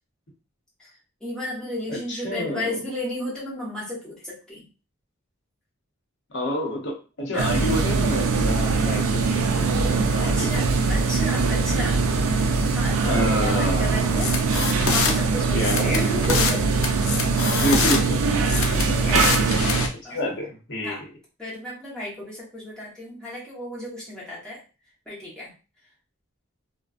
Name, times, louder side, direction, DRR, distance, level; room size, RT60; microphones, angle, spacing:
voice 1, 1.2-4.7 7.3-7.5 10.4-16.6 18.5-19.7 20.0-20.2 20.8-21.0 21.4-24.6 25.1-25.5, left 1 dB, 5° left, -7 dB, 1.1 m, -33 dB
voice 2, 1.9-2.8 6.3-9.7 10.1-10.7 13.1-14.1 15.5-16.0 17.6-18.4 19.3-21.1, equal, 60° left, -1 dB, 0.9 m, -28 dB
sound 1, 7.4-19.9, right 4 dB, 85° right, 0.4 m, -22 dB
sound 2, 14.2-15.1 15.6-16.6 16.8-18.0 18.4-19.9, left 4 dB, 80° left, 0.5 m, -24 dB
2.4 x 2.1 x 2.4 m, 0.33 s
head